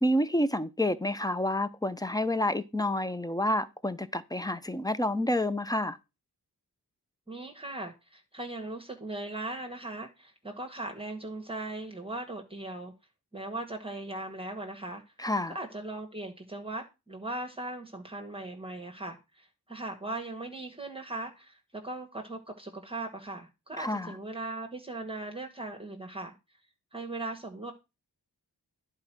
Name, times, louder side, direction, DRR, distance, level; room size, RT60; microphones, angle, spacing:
voice 1, 0.0-6.0 15.2-15.6 23.8-24.1, left 1 dB, 10° left, 0.8 m, -29 dB
voice 2, 7.3-12.9 13.3-15.0 15.5-26.3 26.9-27.7, right 2 dB, 15° right, 1.8 m, -39 dB
10.5 x 4.6 x 6.2 m
cardioid pair, 65°, 39 cm